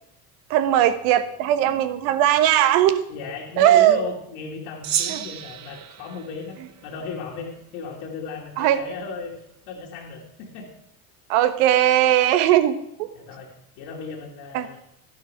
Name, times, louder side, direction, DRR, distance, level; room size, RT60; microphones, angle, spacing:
voice 1, 0.5-3.0 3.6-4.0 5.1-5.2 8.6-8.8 11.3-13.1 14.5-14.7, right 12 dB, 60° right, 11 dB, 1.2 m, -19 dB
voice 2, 3.1-9.3 9.7-10.7 13.1-14.8, left 4 dB, 60° left, -3 dB, 2.4 m, -36 dB
Gong, 4.8-7.5, right 10 dB, 35° right, 0.8 m, -32 dB
13.0 x 11.0 x 3.6 m, 0.75 s
hypercardioid pair, 70°, 47 cm